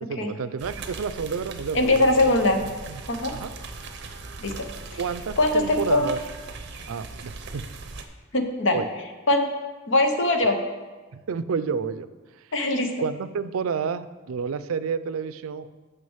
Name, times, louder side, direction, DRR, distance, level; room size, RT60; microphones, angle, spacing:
voice 1, 0.0-2.3 2.6-3.0 3.3-3.5 5.0-6.2 6.9-7.7 8.7-8.9 11.1-12.1 12.4-12.5 13.0-15.7, right 6 dB, 85° right, 14 dB, 0.4 m, -30 dB
sound 1, 0.6-8.0, right 3 dB, 55° right, 0.8 m, -39 dB
voice 2, 1.7-2.6 3.1-3.3 4.4-4.6 5.4-6.1 8.3-8.8 9.3-9.5 9.9-10.6 12.5-12.9, left 2 dB, 60° left, 5 dB, 1.0 m, -21 dB
6.3 x 6.0 x 7.2 m, 1.3 s
head